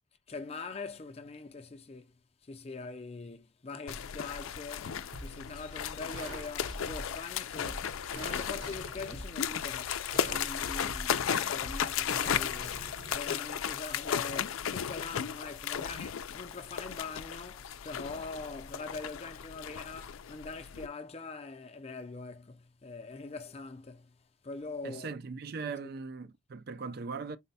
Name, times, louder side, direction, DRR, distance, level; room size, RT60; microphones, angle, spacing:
voice 1, 0.3-2.2 2.4-24.2 24.4-25.1 25.6-25.9, left 3 dB, 30° left, 0.5 m, -43 dB
sound 1, 3.9-20.9, left 8 dB, 85° left, 0.4 m, -35 dB
sound 2, 5.1-13.1, right 1 dB, 70° right, 1.1 m, -45 dB
voice 2, 24.8-27.4, right 4 dB, 50° right, 0.4 m, -39 dB
4.2 x 2.2 x 4.0 m
head